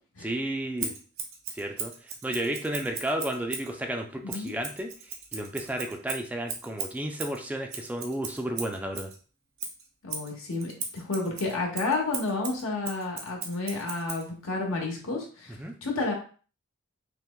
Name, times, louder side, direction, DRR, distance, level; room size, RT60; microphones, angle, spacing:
voice 1, 0.2-0.9 1.5-4.9 5.3-9.1 15.6-15.7, right 1 dB, 5° right, 3 dB, 0.3 m, -32 dB
Scissors, 0.8-3.7 4.3-9.2 9.6-14.3, right 6 dB, 85° right, 0.8 m, -38 dB
voice 2, 4.2-4.5 10.0-15.6 15.8-16.1, left 3 dB, 80° left, 0 dB, 1.0 m, -31 dB
5.6 x 2.1 x 2.2 m, 0.40 s
head